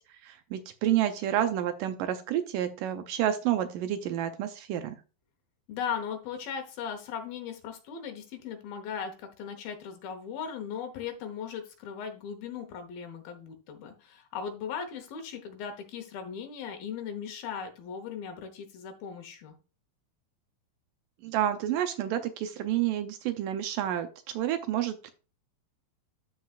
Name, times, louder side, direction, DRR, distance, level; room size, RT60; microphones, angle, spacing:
voice 1, 0.1-5.0 21.2-25.1, right 11 dB, 80° right, 8 dB, 2.1 m, -29 dB
voice 2, 5.7-19.6, left 7 dB, 75° left, 5 dB, 2.8 m, -38 dB
13.0 x 4.8 x 2.4 m, 0.34 s
omnidirectional pair, 4.3 m